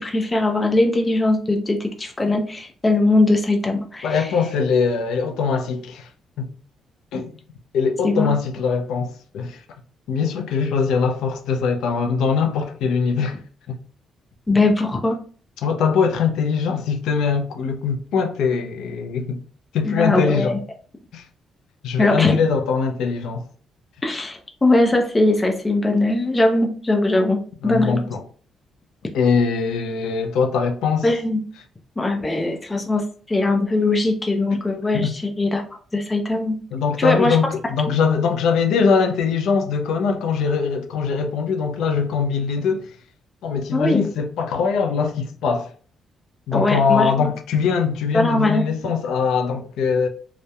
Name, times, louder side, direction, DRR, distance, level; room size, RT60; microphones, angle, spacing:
voice 1, 0.0-4.3 8.0-8.3 14.5-15.2 19.8-20.6 22.0-22.4 24.0-27.4 27.6-28.0 31.0-31.4 32.0-35.6 35.9-36.6 37.0-37.4 37.9-38.0 43.7-44.0 46.5-47.3 48.1-48.7, left 2 dB, 20° left, 0.5 m, -20 dB
voice 2, 4.0-6.1 6.4-6.5 7.1-7.3 7.7-9.6 10.1-13.4 13.7-13.8 15.6-19.4 19.7-20.6 21.1-21.2 21.8-23.5 27.6-28.2 29.1-31.1 34.9-35.1 36.7-42.9 43.4-45.7 46.5-50.1, left 5 dB, 85° left, 0.4 m, -22 dB
2.8 x 2.0 x 2.3 m
cardioid pair, 90°, 0 cm